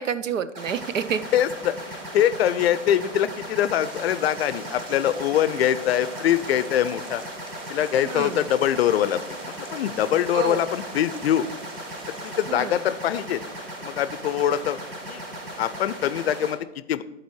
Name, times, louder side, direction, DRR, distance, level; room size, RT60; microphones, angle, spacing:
voice 1, 0.0-1.2 8.0-8.5 10.3-10.7 12.5-12.9, right 7 dB, 80° right, 14 dB, 0.6 m, -29 dB
sound 1, 0.5-16.5, right 1 dB, 30° right, 2.2 m, -37 dB
voice 2, 1.3-7.2 7.7-9.2 9.5-11.5 12.1-13.4 13.8-14.8 15.1-15.2 15.6-17.0, left 10 dB, 55° left, 15 dB, 0.5 m, -23 dB
sound 2, 3.8-12.5, right 2 dB, 15° right, 0.5 m, -43 dB
10.5 x 4.3 x 4.5 m, 0.90 s
figure-of-eight pair, 115°, 38 cm